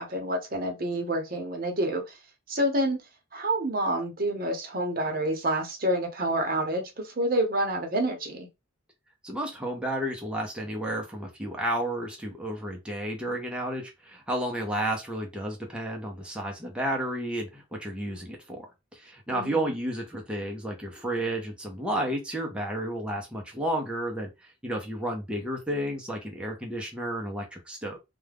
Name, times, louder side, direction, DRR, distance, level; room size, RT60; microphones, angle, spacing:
voice 1, 0.0-2.2 2.5-3.0 3.3-8.5 19.3-19.7, right 1 dB, 45° right, 0.8 m, -28 dB
voice 2, 9.2-18.7 18.9-24.3 24.6-28.0, right 1 dB, 5° right, 0.5 m, -32 dB
2.3 x 2.2 x 3.3 m
head